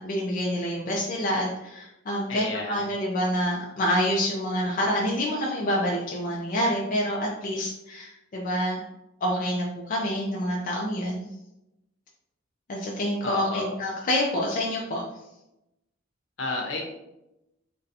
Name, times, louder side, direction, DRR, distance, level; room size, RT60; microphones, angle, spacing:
voice 1, 0.0-8.8 9.2-11.2 12.7-15.0, equal, 45° left, -3 dB, 0.4 m, -27 dB
voice 2, 2.3-2.9 13.2-13.7 16.4-16.8, left 3 dB, 70° left, 0 dB, 0.8 m, -31 dB
2.7 x 2.2 x 3.9 m, 0.90 s
head